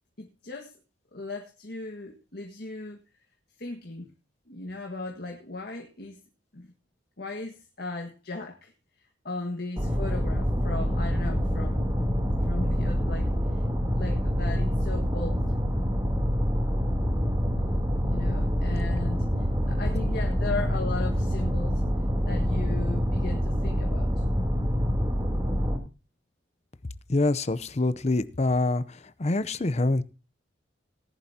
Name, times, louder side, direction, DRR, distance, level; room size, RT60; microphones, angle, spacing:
voice 1, 0.2-0.8 1.1-3.0 3.6-4.1 4.5-6.2 6.5-6.7 7.2-8.7 9.2-13.6 13.9-15.4 18.1-21.8 22.3-24.2, left 2 dB, 60° left, 2 dB, 1.7 m, -37 dB
sound 1, 9.8-25.8, equal, 20° right, 3.1 m, -26 dB
voice 2, 27.1-30.0, left 2 dB, 35° left, 15 dB, 0.7 m, -25 dB
18.5 x 11.0 x 2.8 m, 0.31 s
head